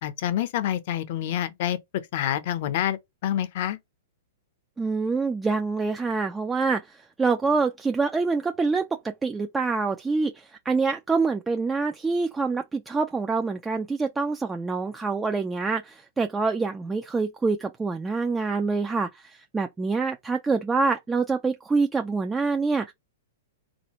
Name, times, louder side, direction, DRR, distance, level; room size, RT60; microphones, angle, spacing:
voice 1, 0.0-1.8 2.1-3.8, left 11 dB, 55° left, 0.7 m, -27 dB
voice 2, 4.8-22.9, right 4 dB, 10° right, 0.4 m, -26 dB
3.9 x 2.5 x 3.0 m
hypercardioid pair, 125°, 0 cm